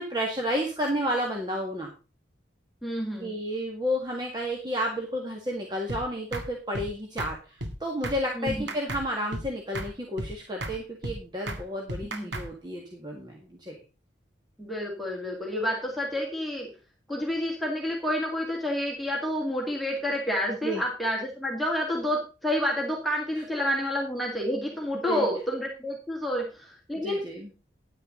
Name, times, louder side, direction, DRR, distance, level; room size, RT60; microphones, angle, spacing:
voice 1, 0.0-1.9 3.2-13.8 20.6-20.8 25.1-25.3 27.0-27.5, equal, 25° right, 0 dB, 1.9 m, -31 dB
voice 2, 2.8-3.3 8.4-8.7 12.1-12.3 14.6-16.7 17.1-27.2, equal, ahead, -2 dB, 2.2 m, -29 dB
sound 1, 5.9-6.0 6.3-6.5 6.7-6.9 7.2-7.3 7.6-7.7 8.0-8.2 8.5-9.0 9.3-9.5 9.8-9.9 10.2-10.3 10.6-10.8 11.0-11.2 11.5-11.6 11.9-12.5, right 1 dB, 70° right, 1.9 m, -34 dB
10.5 x 9.6 x 3.8 m, 0.32 s
head